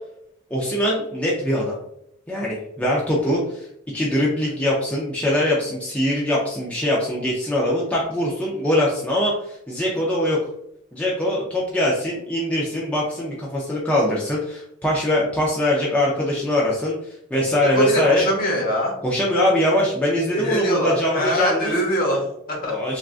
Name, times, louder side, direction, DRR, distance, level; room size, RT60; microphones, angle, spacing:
voice 1, 0.5-1.8 2.3-3.7 3.9-10.4 10.9-16.9 17.3-18.3 19.0-21.7 22.6-23.0, left 1 dB, 5° left, -5 dB, 0.4 m, -22 dB
voice 2, 17.7-18.9 20.3-22.8, equal, 40° left, -1 dB, 0.9 m, -23 dB
3.5 x 2.4 x 2.4 m, 0.77 s
head